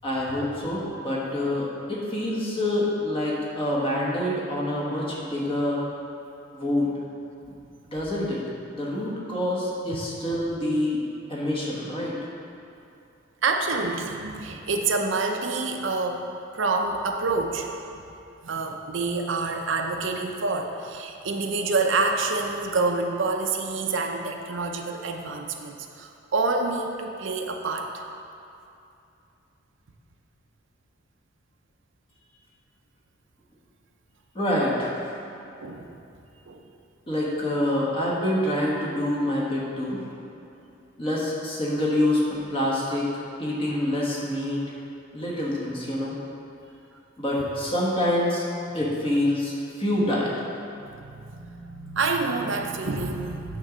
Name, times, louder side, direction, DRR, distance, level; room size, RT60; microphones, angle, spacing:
voice 1, 0.0-5.8 6.5-6.9 7.4-7.5 7.9-8.4 8.7-11.0 11.3-12.2 34.3-35.0 37.1-40.0 41.0-43.1 43.4-44.8 45.1-46.2 47.2-48.4 48.7-49.5 49.8-50.3, left 1 dB, 25° left, -5 dB, 1.4 m, -26 dB
voice 2, 13.4-16.2 16.5-17.7 17.9-18.0 18.4-28.0 35.6-35.9 36.5-36.6 47.4-47.5 48.8-48.9 50.0-50.1 50.8-53.6, right 3 dB, 65° right, 3 dB, 0.6 m, -27 dB
8.9 x 3.9 x 6.2 m, 2.7 s
head